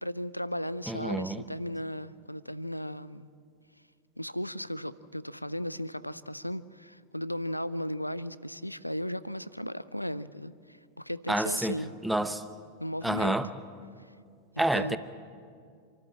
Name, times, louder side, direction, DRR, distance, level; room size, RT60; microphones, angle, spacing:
voice 1, 0.0-3.3 4.2-11.9 12.8-13.4 14.7-15.0, equal, 90° left, 0.5 m, -36 dB
voice 2, 0.9-1.4 11.3-11.7 12.0-12.4 13.0-13.5 14.6-15.0, right 1 dB, 5° right, 0.9 m, -28 dB
27.0 x 13.0 x 7.6 m
figure-of-eight pair, 90°, 0 cm